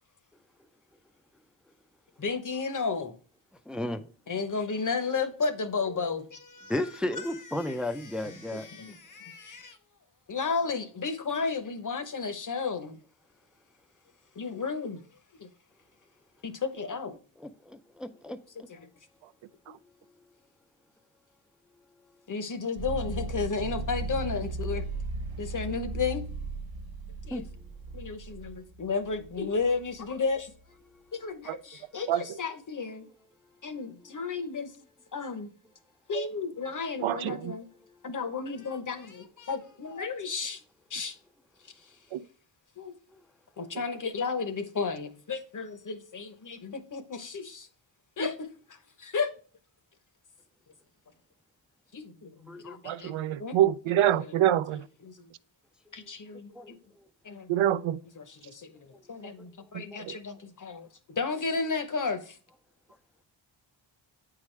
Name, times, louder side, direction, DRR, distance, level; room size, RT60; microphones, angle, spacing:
voice 1, 2.2-3.1 4.3-6.7 7.6-7.7 8.2-9.8 10.3-13.0 14.4-15.0 16.4-17.1 18.7-18.8 22.3-24.9 25.4-26.2 27.3-27.4 27.9-30.5 31.1-33.1 33.6-34.7 35.1-35.5 36.1-37.7 38.0-40.6 40.9-41.2 42.8-42.9 43.6-47.7 48.2-48.5 49.0-49.3 51.9-53.6 54.0-54.3 54.7-55.1 55.9-56.7 57.2-57.5 58.2-62.4, left 4 dB, 40° left, 0.9 m, -33 dB
voice 2, 3.7-4.1 6.7-9.0 17.4-18.7 27.3-27.4 30.9-31.0 52.5-53.0 56.0-56.1 56.5-57.0 58.9-59.0 59.4-59.5 59.8-60.0, left 1 dB, ahead, 0.4 m, -35 dB
sound 1, 22.8-30.1, right 3 dB, 45° right, 0.8 m, -37 dB
voice 3, 37.0-37.5 42.1-42.2 52.8-54.8 57.5-58.0 59.7-60.2, right 12 dB, 75° right, 0.5 m, -26 dB
8.2 x 4.9 x 3.2 m
cardioid pair, 75°, 49 cm